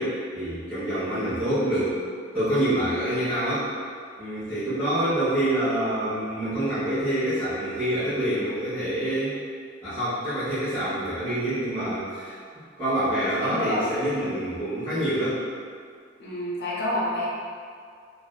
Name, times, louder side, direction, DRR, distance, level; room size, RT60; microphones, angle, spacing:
voice 1, 0.0-2.0 2.3-3.7 4.2-9.4 9.8-12.4 12.8-15.4, right 1 dB, 15° left, -19 dB, 1.0 m, -26 dB
voice 2, 13.4-13.9 16.2-17.3, left 1 dB, 55° left, -6 dB, 0.5 m, -28 dB
2.6 x 2.2 x 2.2 m, 2.1 s
head